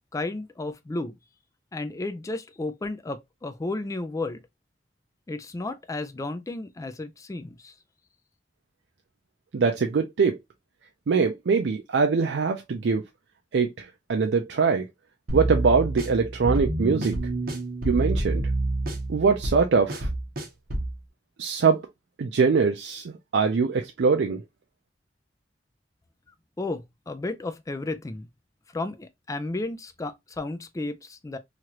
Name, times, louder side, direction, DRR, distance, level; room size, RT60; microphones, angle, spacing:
voice 1, 0.1-1.2 1.7-4.4 5.3-7.7 26.6-28.3 28.7-31.4, left 2 dB, 20° left, 0.3 m, -33 dB
voice 2, 9.5-10.4 11.1-13.0 13.5-13.7 14.1-14.9 15.3-17.1 17.8-18.4 19.1-20.1 21.4-21.8 22.2-24.4, right 5 dB, 85° right, 0.4 m, -22 dB
sound 1, 15.3-20.9, right 2 dB, 55° right, 0.9 m, -28 dB
3.0 x 2.4 x 2.8 m
head